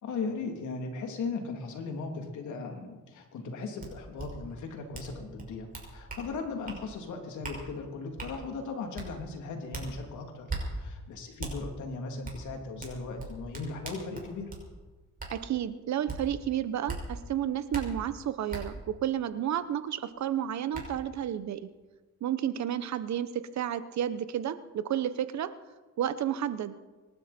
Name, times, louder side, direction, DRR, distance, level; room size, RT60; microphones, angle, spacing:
voice 1, 0.0-10.5 10.7-14.5, left 4 dB, 75° left, 3 dB, 3.2 m, -37 dB
sound 1, 3.8-3.9 4.2-4.3 4.9-5.1 5.4-6.2 6.7-6.8 7.4-7.6 8.2-8.3 8.9-9.1 9.7-9.9 10.5-10.6 11.4-11.5 12.2-12.4 12.8-14.6 15.2-15.3 16.1-16.2 16.9-17.0 17.7-17.8 18.5-18.6 20.1-20.2 20.7-20.8, right 4 dB, 30° right, 5.5 m, -38 dB
voice 2, 15.3-21.7 22.2-25.5 26.0-26.8, right 10 dB, 65° right, 13 dB, 1.0 m, -31 dB
25.0 x 12.5 x 4.5 m, 1.2 s
cardioid pair, 90°, 30 cm